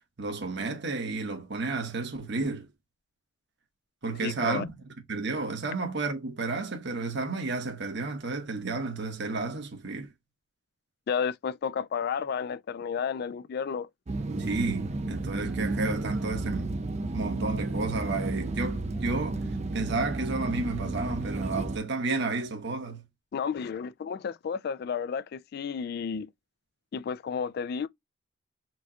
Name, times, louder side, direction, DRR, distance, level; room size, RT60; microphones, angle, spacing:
voice 1, 0.2-2.7 4.0-4.8 5.1-10.1 14.3-16.7 17.1-19.5 19.7-23.0, right 3 dB, 60° right, 1.1 m, -32 dB
voice 2, 4.2-4.6 11.1-13.9 23.3-26.3 26.9-27.9, left 6 dB, 50° left, 0.3 m, -32 dB
sound 1, 14.1-21.8, right 2 dB, 35° right, 0.4 m, -32 dB
4.5 x 2.2 x 2.7 m
head